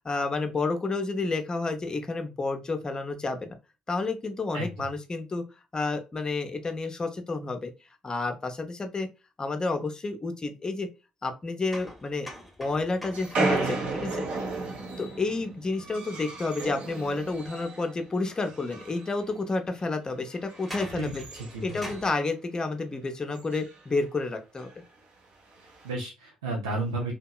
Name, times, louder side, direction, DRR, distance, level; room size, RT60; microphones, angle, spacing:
voice 1, 0.0-3.6 3.9-5.4 5.7-7.7 8.0-9.1 9.4-10.9 11.2-12.3 12.6-14.3 15.0-21.2 21.6-24.7, left 3 dB, 30° left, 6 dB, 0.6 m, -30 dB
voice 2, 4.5-4.9 20.9-21.8 25.6-27.1, right 2 dB, 80° right, -2 dB, 0.4 m, -34 dB
sound 1, 11.7-15.5 18.3-18.4 19.2-19.3 20.5-22.2, equal, ahead, 0.9 m, -44 dB
sound 2, 13.1-17.9 18.2-19.2 19.6-19.8 20.3-22.3 22.6-22.7 22.9-23.0 23.3-23.8 24.6-24.7 25.6-25.9, right 3 dB, 55° right, 0.8 m, -34 dB
2.7 x 2.2 x 2.2 m, 0.28 s
figure-of-eight pair, 45°, 3 cm